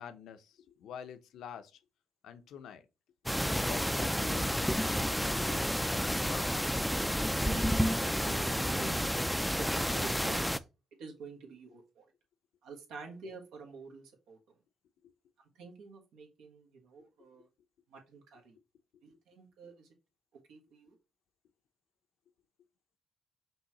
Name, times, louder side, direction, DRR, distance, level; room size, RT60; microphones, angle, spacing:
voice 1, 0.0-1.8 2.2-2.8 3.6-5.7 6.0-6.9, left 8 dB, 75° left, 0.6 m, -47 dB
sound 1, 3.3-10.6, equal, ahead, 0.3 m, -30 dB
voice 2, 7.5-9.2 9.6-10.6 11.0-12.0 12.6-14.4 15.5-17.5 17.9-18.6 19.0-19.9 20.5-20.9, right 4 dB, 85° right, 1.3 m, -48 dB
5.4 x 3.0 x 2.9 m
cardioid pair, 90°, 0 cm